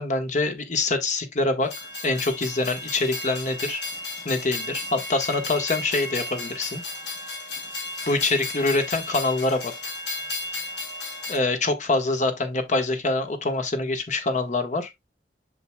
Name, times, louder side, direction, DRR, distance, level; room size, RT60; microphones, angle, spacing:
voice 1, 0.0-1.7 2.0-3.8 4.2-6.8 8.1-9.7 11.3-14.9, left 2 dB, 40° left, 1.3 m, -25 dB
Train, 1.6-11.4, left 2 dB, 75° left, 3.3 m, -34 dB
7.8 x 6.2 x 2.2 m
head